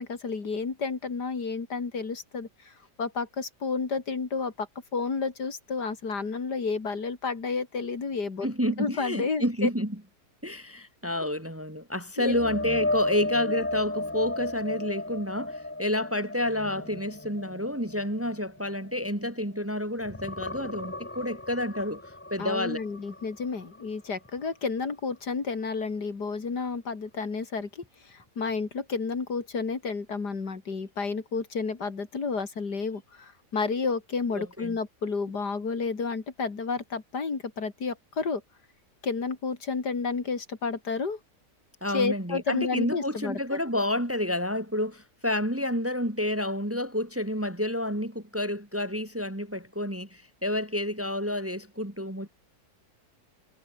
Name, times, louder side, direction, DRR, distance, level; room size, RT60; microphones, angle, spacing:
voice 1, 0.0-2.7 3.0-4.7 4.9-8.5 8.8-9.7 12.2-12.4 22.4-38.4 39.0-41.2 41.9-43.4, left 4 dB, 75° left, 3.4 m, -31 dB
voice 2, 8.4-10.0 10.4-22.0 22.3-22.8 34.3-34.8 41.8-52.3, left 1 dB, 10° right, 1.8 m, -29 dB
sound 1, 12.2-19.7 20.0-23.9 24.3-24.5 27.8-27.9, left 2 dB, 15° left, 0.5 m, -35 dB
omnidirectional pair, 1.8 m